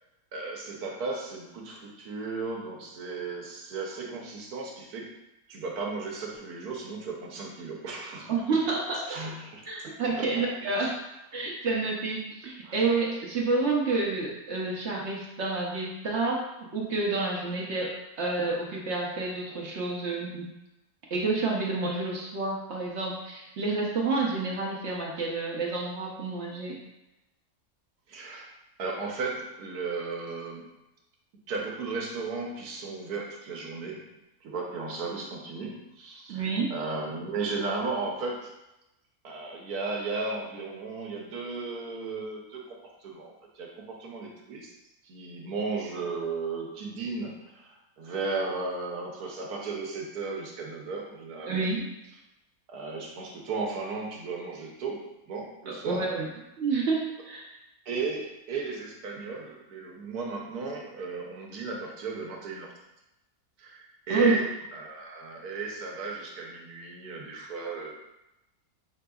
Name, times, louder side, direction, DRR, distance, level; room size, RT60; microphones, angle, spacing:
voice 1, 0.3-5.1 5.5-8.6 9.1-10.4 10.7-10.9 12.6-12.8 28.1-28.5 28.8-30.7 31.5-34.1 34.4-38.5 39.2-44.7 45.0-51.7 52.7-56.0 57.9-62.7 63.6-64.4 64.7-67.9, right 4 dB, 85° right, -1 dB, 1.4 m, -35 dB
voice 2, 8.3-9.0 9.7-10.9 11.3-17.9 18.2-20.5 21.1-26.8 36.3-36.7 51.5-51.9 55.7-56.3 56.6-57.4 64.1-64.4, right 3 dB, 55° right, -2 dB, 0.9 m, -29 dB
5.8 x 3.7 x 2.3 m, 0.93 s
omnidirectional pair, 1.6 m